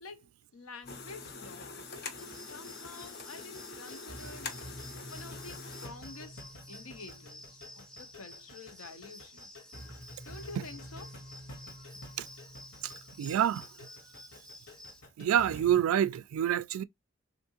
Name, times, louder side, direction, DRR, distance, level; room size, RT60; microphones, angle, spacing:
voice 1, 0.0-4.6 5.1-9.5 10.2-11.1, left 3 dB, 90° left, 0.8 m, -49 dB
sound 1, 0.8-15.8, left 1 dB, 70° left, 1.1 m, -50 dB
sound 2, 0.9-5.9, left 4 dB, 50° left, 0.6 m, -45 dB
sound 3, 2.2-15.0, left 1 dB, 5° left, 0.4 m, -52 dB
voice 2, 13.2-13.7 15.2-16.8, right 10 dB, 90° right, 0.3 m, -27 dB
3.5 x 2.5 x 2.8 m
head